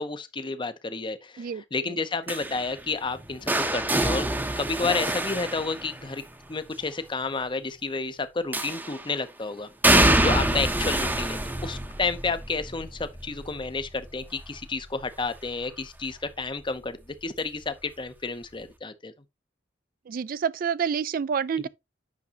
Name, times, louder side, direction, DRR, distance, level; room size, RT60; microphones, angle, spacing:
voice 1, 0.0-4.3 4.6-6.2 6.5-9.7 10.0-19.1, left 4 dB, 25° left, 0.6 m, -31 dB
voice 2, 1.4-2.0 10.1-10.3 20.1-21.7, right 7 dB, 50° right, 0.3 m, -29 dB
sound 1, 2.3-6.3 8.5-9.1 9.8-15.6 16.0-16.4 17.6-17.7, right 1 dB, 10° right, 0.7 m, -26 dB
8.4 x 6.0 x 2.9 m
head